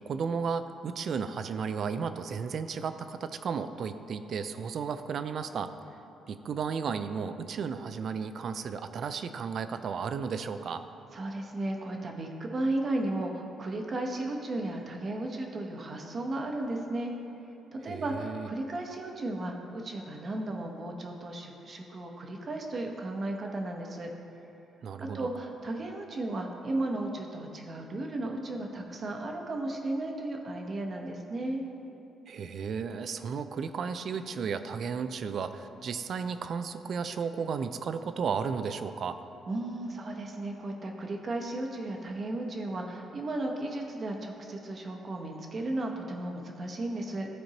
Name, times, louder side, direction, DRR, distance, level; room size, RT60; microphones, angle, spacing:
voice 1, 0.1-5.7 6.3-10.8 17.8-18.5 24.8-25.3 32.3-39.2, right 6 dB, 60° right, 10 dB, 0.4 m, -34 dB
voice 2, 11.1-17.1 17.7-24.1 25.0-31.6 39.5-47.3, right 2 dB, 45° right, 2 dB, 0.9 m, -34 dB
13.0 x 4.4 x 2.9 m, 2.8 s
cardioid pair, 90°, 0 cm